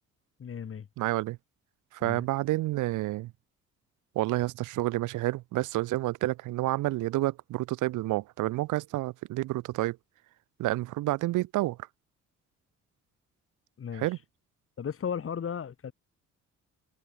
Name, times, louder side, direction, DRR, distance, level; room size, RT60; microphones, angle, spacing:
voice 1, 0.4-0.9 2.0-2.2 13.8-14.1 14.8-15.9, left 7 dB, 45° left, 3.1 m, -35 dB
voice 2, 1.0-1.4 1.9-3.3 4.1-10.0 10.6-11.8 14.0-14.2, right 17 dB, 85° right, 0.8 m, -29 dB
cardioid pair, 90°, 30 cm